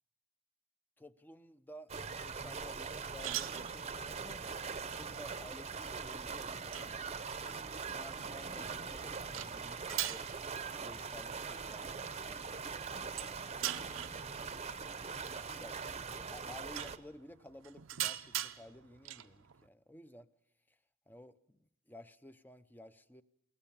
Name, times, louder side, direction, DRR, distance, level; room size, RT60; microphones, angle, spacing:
voice 1, 1.0-4.5 5.0-7.2 7.4-10.3 10.8-13.4 13.8-20.3 20.7-20.8 21.1-23.2, left 1 dB, 10° left, 12 dB, 0.7 m, -55 dB
sound 1, 1.9-17.0, right 5 dB, 30° right, 0.8 m, -42 dB
sound 2, 2.2-19.7, right 13 dB, 90° right, 0.7 m, -45 dB
22.5 x 18.0 x 7.1 m, 0.77 s
head